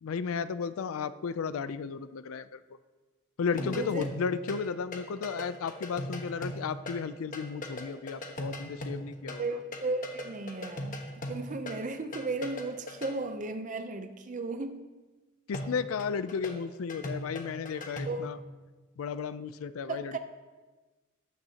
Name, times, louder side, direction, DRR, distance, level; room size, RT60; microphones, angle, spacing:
voice 1, 0.0-2.6 3.4-9.5 15.5-18.4 19.0-20.2, left 5 dB, 80° left, 14 dB, 0.4 m, -34 dB
sound 1, 3.6-4.7 4.9-9.5 9.7-13.1 15.5-18.3, left 1 dB, 40° left, 1.2 m, -39 dB
voice 2, 3.6-4.1 9.4-11.0 11.3-14.8 17.7-18.3 19.9-20.2, right 3 dB, 40° right, 7 dB, 0.6 m, -35 dB
13.0 x 9.7 x 2.8 m, 1.3 s
head